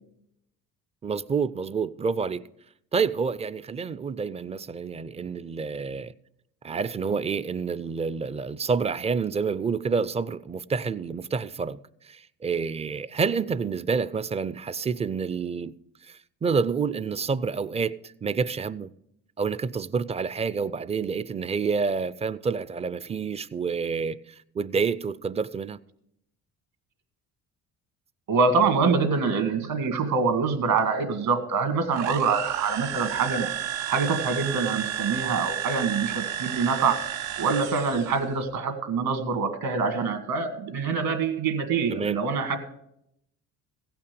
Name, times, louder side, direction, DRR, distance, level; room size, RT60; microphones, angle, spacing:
voice 1, 1.0-2.4 2.9-6.1 6.6-11.8 12.0-15.7 16.0-18.9 19.4-25.8 41.9-42.2, right 5 dB, 20° right, 0.4 m, -28 dB
voice 2, 28.3-33.5 33.9-37.0 37.4-42.6, right 5 dB, 65° right, 2.1 m, -25 dB
sound 1, 31.9-38.2, right 10 dB, 90° right, 0.7 m, -32 dB
16.0 x 5.9 x 6.9 m
supercardioid pair, 75°, 38 cm